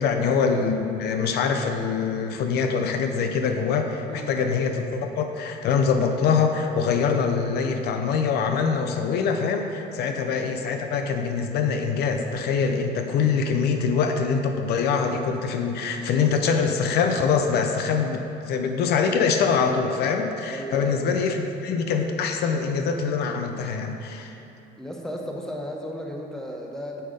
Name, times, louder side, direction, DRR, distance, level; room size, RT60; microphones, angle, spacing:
voice 1, 0.0-24.4, left 5 dB, 70° left, 5 dB, 0.6 m, -24 dB
voice 2, 4.1-4.4 6.0-6.2 10.0-10.3 20.5-21.3 24.8-27.0, equal, 5° left, 0 dB, 0.9 m, -35 dB
6.7 x 5.3 x 5.1 m, 2.9 s
cardioid pair, 110°, 17 cm